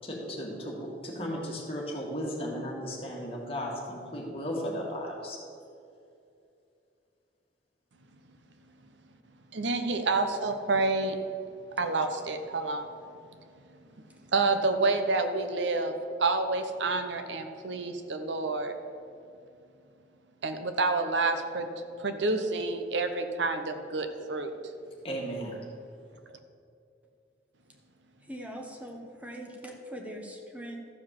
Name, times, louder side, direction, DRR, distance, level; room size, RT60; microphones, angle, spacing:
voice 1, 0.0-5.4 25.0-25.7, equal, 30° left, -2 dB, 1.9 m, -35 dB
voice 2, 9.5-11.1 11.8-12.9 14.3-15.9 16.2-18.7 20.4-21.7 22.0-24.5, right 3 dB, 80° right, 7 dB, 0.8 m, -28 dB
voice 3, 28.2-30.8, equal, 10° right, 1 dB, 1.2 m, -42 dB
13.0 x 4.8 x 7.4 m, 2.6 s
head